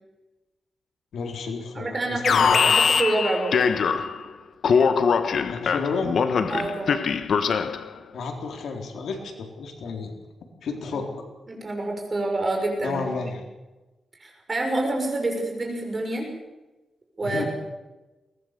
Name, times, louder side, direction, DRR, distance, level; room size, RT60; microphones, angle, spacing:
voice 1, 1.1-2.8 5.4-6.1 8.1-10.1 10.6-11.2 12.8-13.5 17.2-17.5, left 4 dB, 80° left, 2 dB, 4.1 m, -32 dB
voice 2, 1.7-3.6 6.5-7.0 11.5-13.0 14.2-16.3 17.2-17.5, right 2 dB, 25° right, 2 dB, 6.5 m, -27 dB
Alarm, 2.2-4.3 4.6-7.9, left 6 dB, 60° left, 1.4 m, -22 dB
22.5 x 19.5 x 6.9 m, 1.1 s
wide cardioid pair, 145°, 0 cm